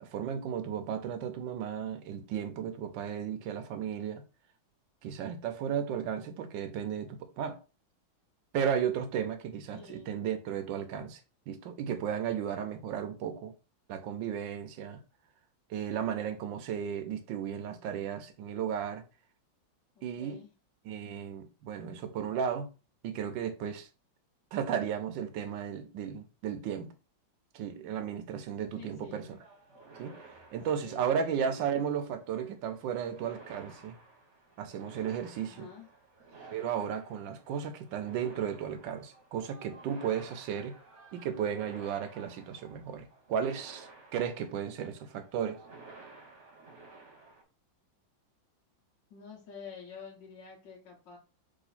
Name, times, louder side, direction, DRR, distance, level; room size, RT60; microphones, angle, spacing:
voice 1, 0.0-4.2 5.0-7.6 8.5-11.2 11.5-13.5 13.9-15.0 15.7-19.0 20.0-20.4 20.8-22.7 23.0-23.9 24.5-26.9 27.5-29.4 30.0-30.1 30.5-34.0 34.6-35.7 36.5-40.7 41.1-45.6, right 8 dB, 75° right, 1.3 m, -34 dB
voice 2, 9.7-10.1 20.0-20.5 28.7-29.2 30.7-31.6 35.4-35.9 49.1-51.2, left 6 dB, 70° left, 1.7 m, -49 dB
sound 1, 29.1-47.4, right 3 dB, 45° right, 1.2 m, -54 dB
3.8 x 3.1 x 4.1 m
omnidirectional pair, 2.2 m